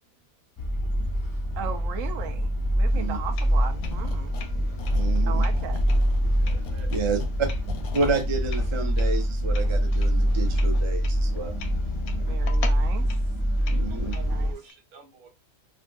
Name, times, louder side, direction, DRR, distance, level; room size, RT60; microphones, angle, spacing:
sound 1, 0.6-14.5, equal, 30° left, 0.3 m, -25 dB
voice 1, 1.6-4.4 5.2-5.8 12.2-13.1 14.1-14.5, right 8 dB, 70° right, 1.0 m, -37 dB
sound 2, 2.9-14.7, left 7 dB, 85° left, 1.1 m, -46 dB
sound 3, 3.8-4.5 4.8-8.3, left 5 dB, 65° left, 0.8 m, -40 dB
voice 2, 4.9-5.4 6.9-7.5 7.9-11.6 13.7-14.1, right 4 dB, 40° right, 0.4 m, -30 dB
voice 3, 6.3-6.9 13.6-15.3, right 5 dB, 85° right, 1.4 m, -49 dB
3.7 x 2.5 x 2.3 m
omnidirectional pair, 1.5 m